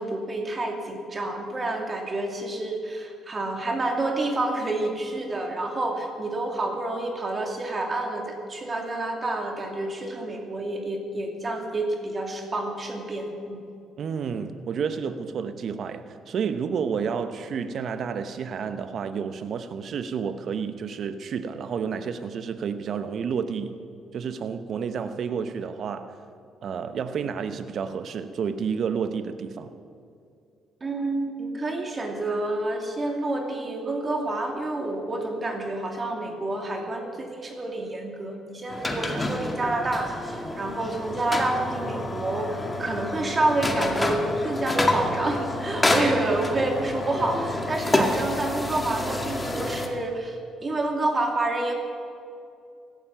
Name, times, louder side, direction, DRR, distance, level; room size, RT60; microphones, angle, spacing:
voice 1, 0.0-13.7 30.8-51.7, right 2 dB, 35° right, 2.6 m, -28 dB
voice 2, 14.0-23.8 24.1-26.2 26.6-29.7, right 6 dB, 60° right, 1.0 m, -30 dB
sound 1, 38.7-49.9, left 1 dB, 20° left, 2.1 m, -28 dB
16.5 x 12.5 x 5.8 m
supercardioid pair, 60°, 0 cm